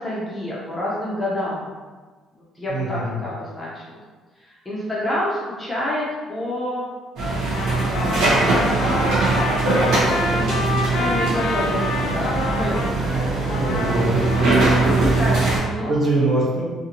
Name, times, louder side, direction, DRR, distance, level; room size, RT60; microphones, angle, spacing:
voice 1, 0.0-1.7 2.6-3.8 4.4-6.8 7.8-13.4 14.4-14.8 15.1-15.9, left 1 dB, 10° left, -7 dB, 0.5 m, -28 dB
voice 2, 2.7-3.1 13.5-14.2 15.9-16.6, right 2 dB, 35° right, -7 dB, 0.9 m, -22 dB
sound 1, 7.2-15.6, right 2 dB, 80° right, 0.8 m, -21 dB
Trumpet, 7.4-13.0 13.5-15.4, left 3 dB, 80° left, 0.4 m, -28 dB
2.7 x 2.5 x 2.8 m, 1.4 s
cardioid pair, 175°, 0 cm